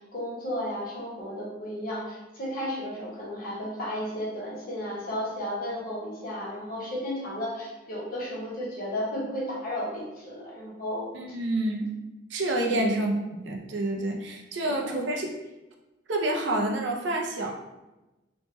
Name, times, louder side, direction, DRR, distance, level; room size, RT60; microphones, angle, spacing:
voice 1, 0.0-11.1 12.7-12.9 14.8-15.0, left 1 dB, 45° left, -5 dB, 1.0 m, -33 dB
voice 2, 11.1-11.9 12.3-15.3 16.1-17.5, right 1 dB, 65° right, 1 dB, 0.5 m, -28 dB
3.0 x 2.2 x 3.0 m, 1.0 s
head